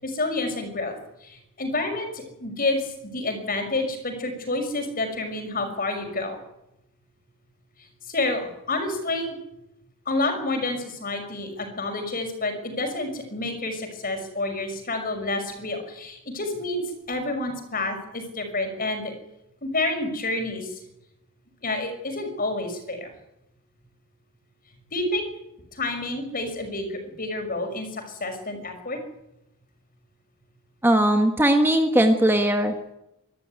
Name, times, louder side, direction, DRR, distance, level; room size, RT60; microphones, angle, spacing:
voice 1, 0.0-6.4 7.8-9.4 10.1-16.8 17.1-19.1 19.6-20.8 21.6-23.1 24.9-25.2 25.7-29.0, left 2 dB, 40° left, 5 dB, 6.0 m, -29 dB
voice 2, 30.8-32.9, right 1 dB, 10° right, 5 dB, 1.4 m, -19 dB
25.5 x 13.5 x 9.6 m, 0.86 s
head